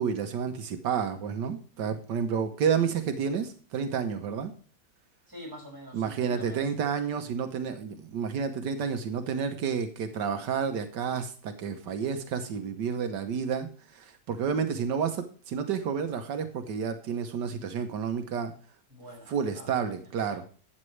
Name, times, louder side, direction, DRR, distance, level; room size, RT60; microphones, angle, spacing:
voice 1, 0.0-4.5 5.9-18.5 19.3-20.4, right 7 dB, 85° right, 7 dB, 1.6 m, -30 dB
voice 2, 5.3-6.7 18.9-19.8 20.2-20.5, equal, 10° right, -2 dB, 5.8 m, -46 dB
13.0 x 8.9 x 3.2 m, 0.42 s
omnidirectional pair, 1.8 m